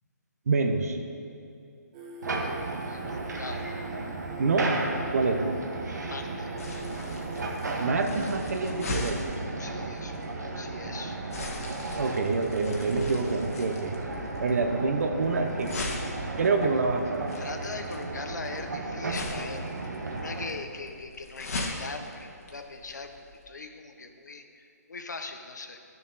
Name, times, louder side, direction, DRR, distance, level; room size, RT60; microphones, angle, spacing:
voice 1, 0.5-1.0 4.4-4.8 5.1-5.5 7.8-9.3 12.0-14.0 14.4-15.7 16.4-17.3, right 3 dB, 60° right, 5 dB, 1.1 m, -26 dB
Singing, 1.9-7.9, right 2 dB, 25° right, 1.0 m, -45 dB
sound 1, 2.2-20.5, right 2 dB, 85° right, 1.5 m, -35 dB
voice 2, 2.9-3.7 6.0-6.5 9.6-10.3 10.6-11.2 17.4-25.8, left 3 dB, 85° left, 6 dB, 1.0 m, -41 dB
sound 2, 6.6-23.4, left 3 dB, 60° left, 1.6 m, -40 dB
12.5 x 6.8 x 4.1 m, 2.6 s
hypercardioid pair, 160°, 9 cm